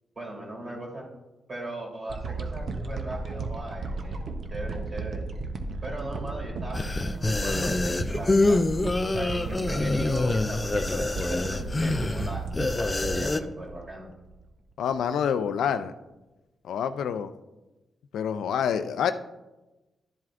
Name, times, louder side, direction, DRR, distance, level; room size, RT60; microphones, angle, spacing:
voice 1, 0.1-1.1 1.5-5.2 5.8-8.6 9.1-12.4 12.8-14.1, right 1 dB, 45° right, -1 dB, 3.3 m, -38 dB
sound 1, 2.1-14.4 14.9-15.0, right 3 dB, 60° right, 0.8 m, -34 dB
sound 2, 6.7-13.4, left 2 dB, 25° left, 0.4 m, -26 dB
voice 2, 14.8-15.9 16.6-17.3 18.1-19.1, left 8 dB, 90° left, 10 dB, 0.4 m, -27 dB
12.0 x 7.6 x 2.5 m, 1.1 s
cardioid pair, 85°, 0 cm